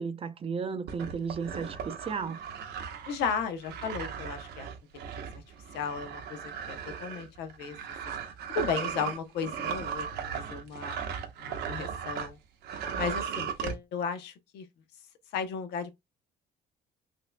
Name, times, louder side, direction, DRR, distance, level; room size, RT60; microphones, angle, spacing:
voice 1, 0.0-2.4, right 5 dB, 35° right, 0.6 m, -34 dB
sound 1, 0.9-12.3 12.6-13.7, right 7 dB, 75° right, 0.9 m, -37 dB
voice 2, 3.1-4.7 5.0-5.4 5.7-7.8 8.5-10.1 10.3-11.0 11.4-12.4 12.9-14.6 15.3-15.9, left 6 dB, 80° left, 0.8 m, -35 dB
4.2 x 2.6 x 2.2 m
cardioid pair, 110°, 17 cm